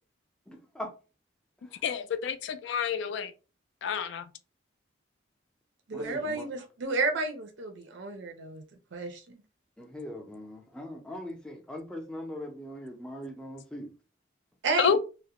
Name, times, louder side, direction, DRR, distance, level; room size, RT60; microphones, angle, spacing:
voice 1, 0.5-0.9 1.6-1.8 5.9-6.5 9.8-13.9, left 1 dB, 5° left, 0.4 m, -41 dB
voice 2, 1.8-3.3 3.8-4.2 14.8-15.0, left 7 dB, 70° left, 0.3 m, -28 dB
voice 3, 5.9-8.6 8.9-9.4 14.6-15.0, right 3 dB, 75° right, 0.5 m, -31 dB
2.3 x 2.1 x 2.8 m
head